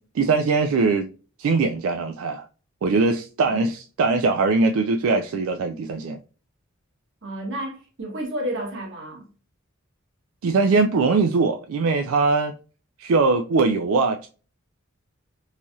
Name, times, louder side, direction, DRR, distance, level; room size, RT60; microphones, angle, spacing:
voice 1, 0.1-1.1 1.4-2.4 2.8-6.2 10.4-12.5 13.0-14.3, right 4 dB, 85° right, 0.4 m, -21 dB
voice 2, 7.2-9.2, equal, 60° right, 1.3 m, -31 dB
3.2 x 2.7 x 2.2 m
head